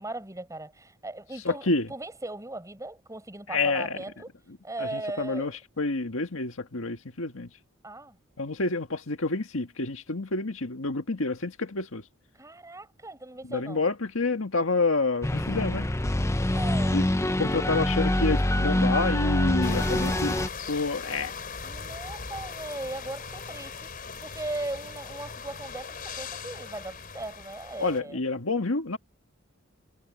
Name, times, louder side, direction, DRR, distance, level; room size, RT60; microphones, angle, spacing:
voice 1, 0.0-4.3 4.6-5.5 7.8-8.2 12.3-13.8 16.5-17.1 19.7-20.2 21.6-28.2, right 2 dB, 15° right, 7.6 m, -38 dB
voice 2, 1.5-1.9 3.5-4.0 4.8-5.5 5.8-7.5 8.4-12.0 13.5-15.9 16.9-17.0 17.4-20.3 20.7-21.3 27.8-29.0, left 3 dB, 70° left, 1.9 m, -28 dB
sound 1, 15.2-20.5, left 1 dB, 15° left, 0.7 m, -25 dB
sound 2, 19.6-28.0, left 5 dB, 45° left, 4.5 m, -39 dB
head